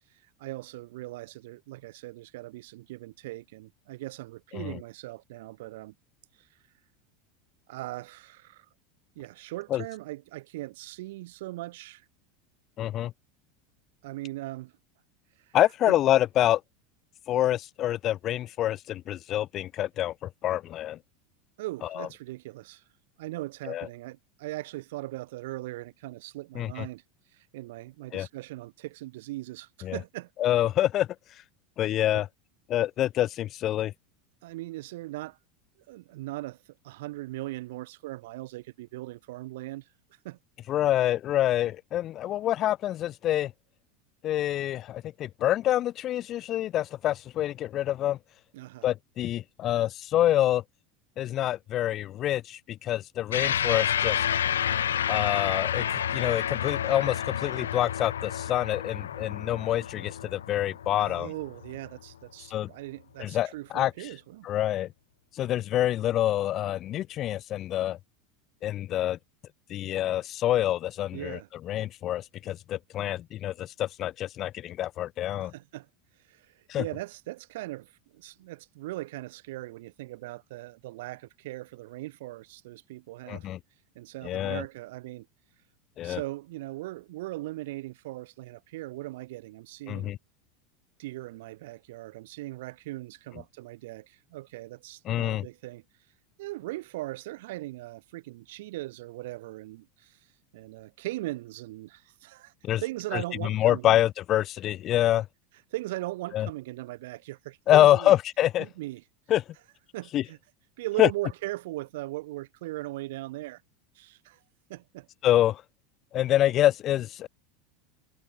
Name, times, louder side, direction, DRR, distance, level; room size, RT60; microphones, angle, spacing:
voice 1, 0.4-5.9 6.4-6.5 7.7-8.7 9.1-12.0 14.0-14.7 15.5-15.6 15.8-16.0 21.6-22.8 23.2-27.0 27.3-30.3 32.1-32.2 34.4-35.4 35.9-39.9 40.2-40.4 48.5-48.9 61.0-64.5 71.1-71.5 75.4-75.9 76.3-83.5 83.9-85.3 86.0-90.1 91.0-95.8 96.4-100.2 100.5-102.5 102.8-104.0 104.6-104.7 105.7-108.1 108.6-109.0 109.9-110.4 110.8-113.6 113.9-114.4 114.7-115.1, right 18 dB, 70° right, 1.6 m, -39 dB
voice 2, 12.8-13.1 15.5-16.6 17.3-21.0 21.9-22.1 23.7-23.9 26.6-26.8 28.1-28.3 29.8-30.0 30.4-31.1 31.8-32.3 32.7-33.9 40.7-43.5 44.2-48.2 48.8-50.6 51.2-54.2 55.1-61.3 62.5-62.7 63.2-63.9 64.4-64.9 65.4-68.0 68.6-69.2 69.7-71.4 71.7-75.5 76.7-76.8 83.3-83.6 84.2-84.6 86.0-86.2 89.9-90.2 95.1-95.5 102.6-102.8 103.1-105.2 106.3-106.5 107.7-108.6 109.3-109.4 110.1-110.2 111.0-111.1 115.2-115.6 116.1-117.3, left 13 dB, 45° left, 1.1 m, -26 dB
sound 1, 53.3-62.0, left 9 dB, 90° left, 1.0 m, -30 dB
hypercardioid pair, 100°, 0 cm